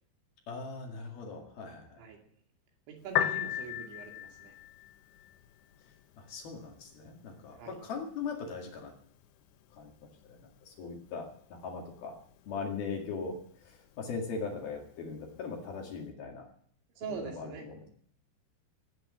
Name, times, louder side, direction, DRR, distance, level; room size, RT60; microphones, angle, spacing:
voice 1, 0.5-2.0 6.2-8.9 9.7-12.1 12.5-16.5 17.2-17.9, left 5 dB, 60° left, 1 dB, 3.8 m, -40 dB
voice 2, 2.9-4.5 7.6-7.8 17.0-17.7, right 5 dB, 90° right, 2 dB, 4.9 m, -43 dB
Piano, 3.0-16.0, left 11 dB, 80° left, 3.2 m, -41 dB
17.0 x 9.1 x 8.8 m, 0.62 s
omnidirectional pair, 5.1 m